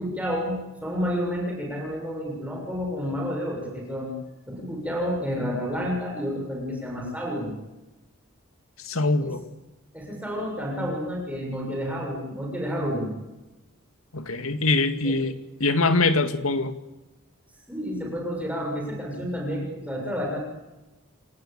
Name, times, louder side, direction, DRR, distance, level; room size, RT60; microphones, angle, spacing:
voice 1, 0.0-4.1 4.5-7.6 9.2-9.3 9.9-13.1 15.0-15.2 17.7-20.4, equal, 5° right, -1 dB, 6.8 m, -30 dB
voice 2, 8.8-9.4 14.1-15.3 15.6-16.7, left 3 dB, 85° left, 9 dB, 2.2 m, -23 dB
28.0 x 19.0 x 8.9 m, 1.1 s
head